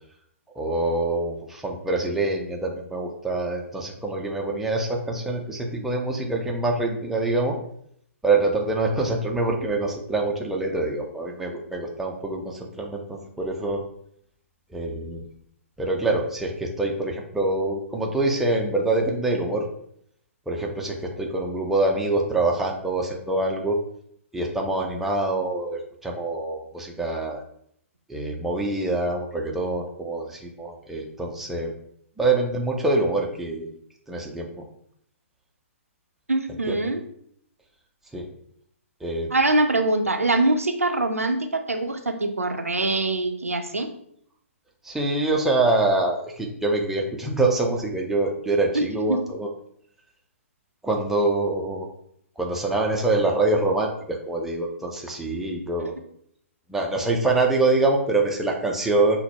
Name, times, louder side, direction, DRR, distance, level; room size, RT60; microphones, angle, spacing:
voice 1, 0.6-7.6 8.2-13.8 14.7-15.3 15.8-19.7 20.5-23.8 24.3-27.4 28.1-31.7 32.2-33.7 34.1-34.6 36.7-36.8 38.1-38.3 39.0-39.3 44.8-49.5 50.8-51.9 52.4-55.9 56.7-59.2, right 2 dB, 5° right, 0 dB, 0.5 m, -25 dB
voice 2, 36.3-37.0 39.3-43.9 48.7-49.2 55.8-55.9, right 2 dB, 85° right, 6 dB, 0.5 m, -23 dB
5.7 x 2.1 x 2.8 m, 0.68 s
figure-of-eight pair, 125°, 8 cm